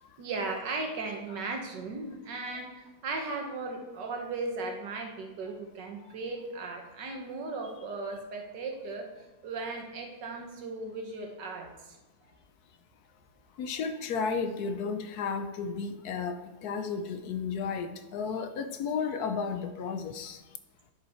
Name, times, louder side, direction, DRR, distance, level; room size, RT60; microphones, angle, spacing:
voice 1, 0.2-9.1 9.4-12.0, right 3 dB, 90° right, 2 dB, 1.8 m, -37 dB
voice 2, 13.6-20.4, left 5 dB, 70° left, 9 dB, 1.1 m, -33 dB
10.0 x 5.4 x 4.3 m, 1.1 s
omnidirectional pair, 1.8 m